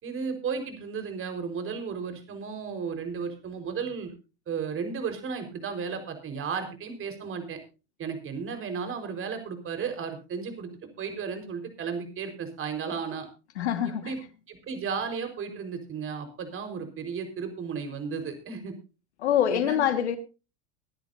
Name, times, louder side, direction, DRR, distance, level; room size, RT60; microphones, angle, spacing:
voice 1, 0.0-4.1 4.5-7.6 8.0-10.7 11.0-13.3 13.8-14.2 14.5-18.7 19.5-19.9, right 6 dB, 40° right, 4.5 m, -34 dB
voice 2, 13.6-14.1 19.2-20.2, left 10 dB, 85° left, 1.8 m, -25 dB
24.5 x 10.5 x 2.7 m
hypercardioid pair, 85°, 33 cm